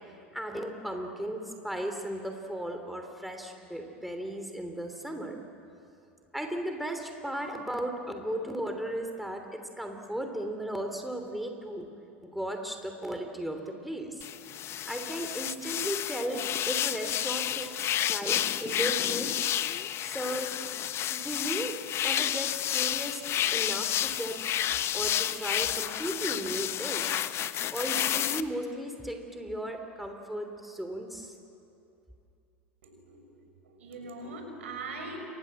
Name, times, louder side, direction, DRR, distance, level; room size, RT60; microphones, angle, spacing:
voice 1, 0.1-5.4 6.3-11.9 12.2-14.2 14.9-16.4 16.6-17.7 18.0-19.3 20.0-20.5 21.1-23.2 23.5-24.4 24.9-27.2 27.7-31.3, right 1 dB, ahead, 4 dB, 3.1 m, -36 dB
sound 1, 14.2-28.4, left 11 dB, 40° left, 0.9 m, -30 dB
voice 2, 32.8-33.3 33.6-35.3, right 2 dB, 75° right, 4 dB, 6.3 m, -41 dB
29.0 x 24.5 x 7.8 m, 2.7 s
figure-of-eight pair, 85°, 7 cm